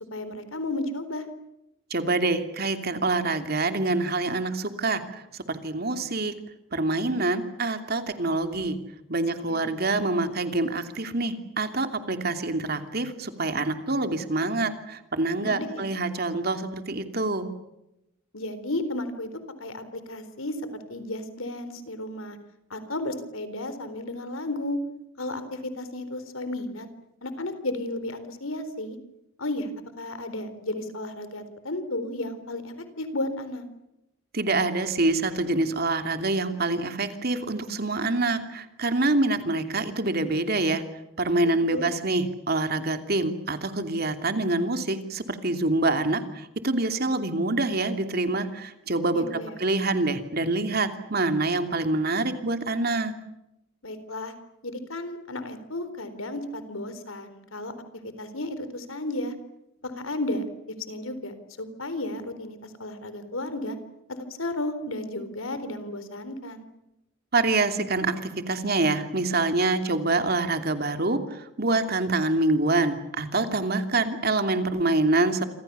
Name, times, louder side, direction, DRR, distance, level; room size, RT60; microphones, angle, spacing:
voice 1, 0.1-1.3 9.4-9.7 15.4-15.9 18.3-19.3 19.6-20.6 20.9-22.4 22.7-24.8 25.2-26.9 27.2-29.0 29.4-29.7 30.0-33.6 41.4-41.9 49.1-49.6 53.8-54.3 54.6-57.7 58.2-59.3 59.8-60.5 60.9-63.8 64.1-66.7, left 1 dB, 90° left, 11 dB, 4.0 m, -33 dB
voice 2, 1.9-5.0 5.5-6.3 6.7-8.8 9.1-17.5 34.3-40.8 41.2-49.2 49.6-53.1 67.3-71.2 71.6-75.4, right 2 dB, 50° right, 7 dB, 2.9 m, -26 dB
27.5 x 26.5 x 7.0 m, 0.88 s
head